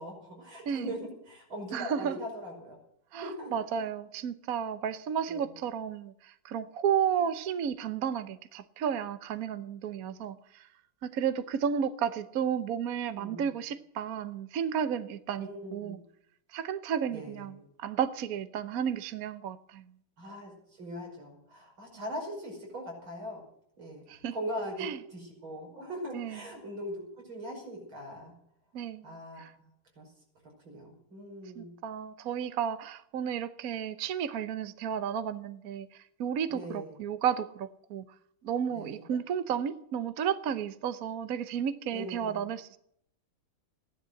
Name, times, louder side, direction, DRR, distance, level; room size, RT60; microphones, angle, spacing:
voice 1, 0.0-2.8 3.2-3.5 5.3-5.5 13.2-13.6 15.4-16.0 17.1-17.5 20.2-23.4 23.8-24.0 24.3-28.3 29.0-29.7 30.0-30.1 30.6-31.7 36.5-37.0 38.7-39.1 41.9-42.4, equal, 80° right, 0 dB, 6.2 m, -41 dB
voice 2, 1.7-2.2 3.1-10.7 11.0-16.0 16.5-19.8 24.1-24.3 24.8-25.0 26.1-26.4 28.7-29.5 31.6-38.0 38.4-42.8, right 8 dB, 60° right, 12 dB, 1.0 m, -33 dB
15.5 x 11.0 x 7.7 m, 0.71 s
omnidirectional pair, 2.2 m